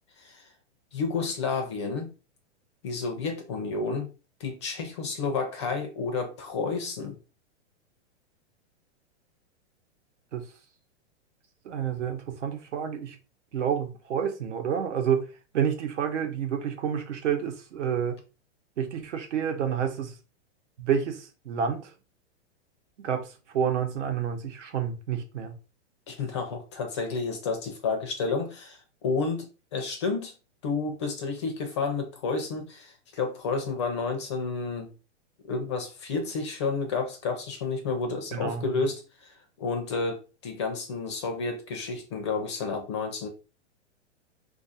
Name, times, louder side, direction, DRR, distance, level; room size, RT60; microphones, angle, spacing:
voice 1, 0.2-0.5 0.9-2.1 2.8-4.1 4.4-7.2 26.1-30.3 30.6-34.9 35.5-43.3, left 4 dB, 25° left, 0.4 m, -31 dB
voice 2, 11.6-13.2 13.5-15.2 15.5-18.2 18.8-20.1 20.8-21.9 23.0-25.6 38.3-38.8, right 8 dB, 80° right, 1.0 m, -29 dB
2.5 x 2.5 x 4.1 m
hypercardioid pair, 160°, 35 cm